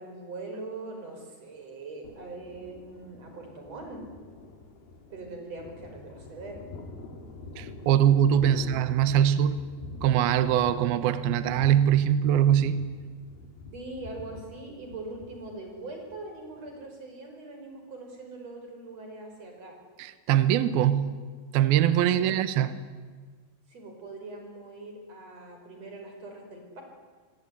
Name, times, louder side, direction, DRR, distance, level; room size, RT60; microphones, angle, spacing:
voice 1, 0.0-4.0 5.1-6.6 8.5-8.6 13.7-19.8 22.2-22.4 23.7-26.8, right 2 dB, 35° right, 3 dB, 6.4 m, -42 dB
Thunder, 2.0-16.8, left 3 dB, 60° left, 4.3 m, -45 dB
voice 2, 7.6-9.6 10.0-12.9 20.0-21.2 21.5-22.8, right 10 dB, 70° right, 12 dB, 2.8 m, -22 dB
27.0 x 22.5 x 9.7 m, 1.5 s
omnidirectional pair, 5.0 m